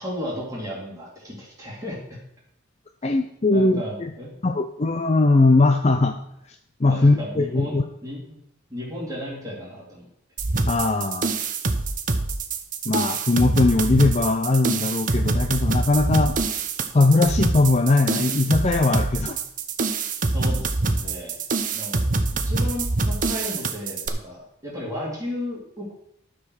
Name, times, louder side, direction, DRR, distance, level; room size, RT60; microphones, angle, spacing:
voice 1, 0.0-2.0 3.0-3.1 3.5-4.4 6.9-7.7 8.0-8.2 8.7-10.1 20.3-21.4 21.7-25.9, left 1 dB, 15° right, -5 dB, 2.8 m, -34 dB
voice 2, 3.0-4.1 4.4-6.1 6.5-7.8 10.7-11.3 12.9-16.4 16.9-19.4, left 3 dB, 30° left, 6 dB, 0.5 m, -20 dB
sound 1, 10.4-24.1, right 3 dB, 40° right, 0.9 m, -25 dB
12.0 x 5.0 x 6.3 m, 0.75 s
head